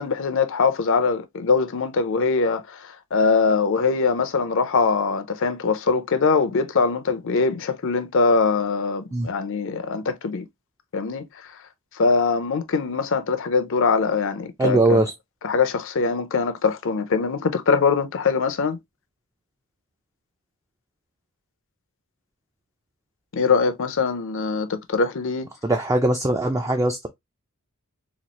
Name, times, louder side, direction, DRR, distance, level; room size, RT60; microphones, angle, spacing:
voice 1, 0.0-10.4 10.9-11.6 11.9-15.0 15.4-18.8 23.3-25.5, left 4 dB, 60° left, 0.6 m, -22 dB
voice 2, 14.6-15.1 25.6-27.1, right 2 dB, 15° right, 0.4 m, -20 dB
4.1 x 2.4 x 2.9 m
head